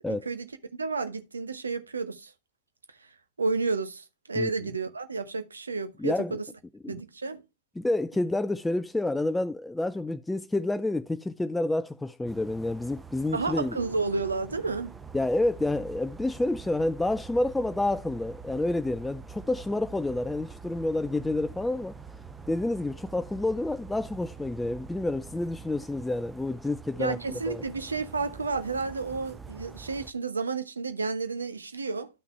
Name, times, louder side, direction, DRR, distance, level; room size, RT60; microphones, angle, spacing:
voice 1, 0.1-0.5 0.8-2.3 3.4-6.4 6.9-7.4 13.3-15.0 27.0-32.1, right 4 dB, 75° right, 1.0 m, -31 dB
voice 2, 6.0-6.4 6.8-7.0 7.8-13.8 15.1-22.0 22.5-27.6, left 2 dB, 5° left, 0.4 m, -29 dB
sound 1, 12.3-30.1, right 5 dB, 10° right, 0.8 m, -46 dB
12.0 x 5.9 x 3.3 m
figure-of-eight pair, 90°, 0 cm